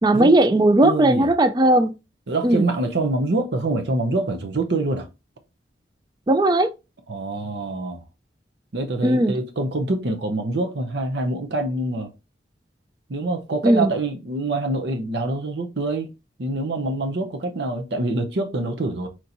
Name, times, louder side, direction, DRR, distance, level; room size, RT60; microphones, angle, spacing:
voice 1, 0.0-1.9 2.4-2.7 6.3-6.7 9.0-9.3 13.6-13.9, right 1 dB, 20° right, 0.4 m, -17 dB
voice 2, 0.8-1.3 2.3-5.1 7.1-8.0 8.7-12.1 13.1-16.1 16.4-19.1, right 2 dB, 65° right, 0.7 m, -25 dB
4.5 x 4.3 x 2.6 m
head